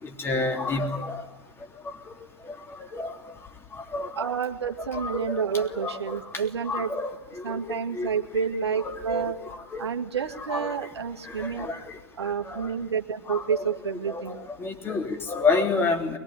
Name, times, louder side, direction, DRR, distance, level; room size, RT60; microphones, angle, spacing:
voice 1, 0.0-1.2 1.8-1.9 2.4-3.1 3.7-4.3 4.9-6.2 6.6-8.1 8.3-8.5 8.8-9.9 10.3-10.8 11.2-12.7 13.3-13.6 14.1-16.2, left 3 dB, 15° left, 3 dB, 3.4 m, -30 dB
voice 2, 4.1-6.9 7.4-9.4 9.8-11.7 12.2-14.4, right 6 dB, 75° right, 4 dB, 2.1 m, -29 dB
22.5 x 22.0 x 9.6 m, 1.1 s
figure-of-eight pair, 105°, 14 cm